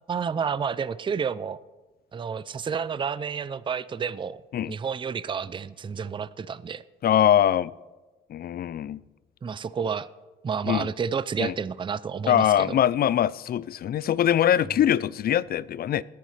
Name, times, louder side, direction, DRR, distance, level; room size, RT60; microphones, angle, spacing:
voice 1, 0.1-1.6 2.1-6.8 9.4-10.1 10.4-12.8, right 6 dB, 25° right, 0.4 m, -30 dB
voice 2, 7.0-7.7 8.3-9.0 10.7-10.9 11.4-11.5 12.3-16.0, left 10 dB, 50° left, 0.4 m, -22 dB
19.5 x 9.5 x 3.3 m
cardioid pair, 90°, 20 cm